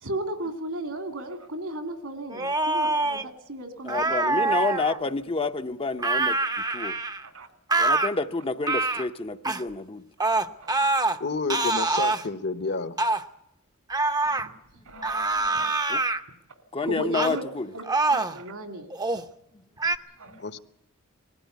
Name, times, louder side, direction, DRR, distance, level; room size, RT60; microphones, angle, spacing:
voice 1, 0.0-4.4 7.2-7.5 10.6-10.8 14.4-14.5 14.8-15.7 16.8-17.4 17.7-18.9 20.2-20.4, right 1 dB, 70° right, 3.0 m, -35 dB
sound 1, 2.3-3.2 3.9-5.0 6.0-7.3 7.7-8.1 8.6-9.1 9.5-9.6 10.2-11.2 11.5-12.2 13.0-13.2 13.9-14.5 15.0-16.2 17.1-17.4 17.8-18.4 18.9-19.3 19.8-20.0, right 2 dB, 20° right, 0.8 m, -25 dB
voice 2, 3.8-6.4 6.7-7.0 7.8-10.0 14.3-14.6 15.9-16.0 16.7-17.7 20.3-20.4, left 3 dB, 25° left, 0.8 m, -29 dB
voice 3, 11.2-13.0 20.4-20.6, left 3 dB, 55° left, 1.1 m, -30 dB
20.5 x 15.5 x 9.4 m
head